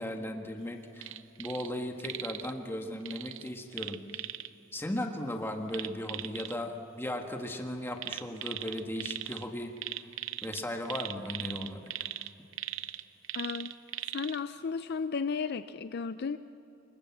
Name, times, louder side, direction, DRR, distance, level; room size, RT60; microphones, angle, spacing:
voice 1, 0.0-4.2 4.7-10.1 10.4-11.8, left 1 dB, 10° left, 3 dB, 1.6 m, -37 dB
sound 1, 1.0-1.7 2.0-2.5 3.1-4.5 5.7-6.5 8.0-9.4 9.8-14.4 14.8-14.9, right 13 dB, 70° right, 0.7 m, -39 dB
voice 2, 13.3-13.7 14.1-16.4, left 5 dB, 55° left, 12 dB, 0.5 m, -34 dB
25.5 x 21.5 x 7.3 m, 2.9 s
head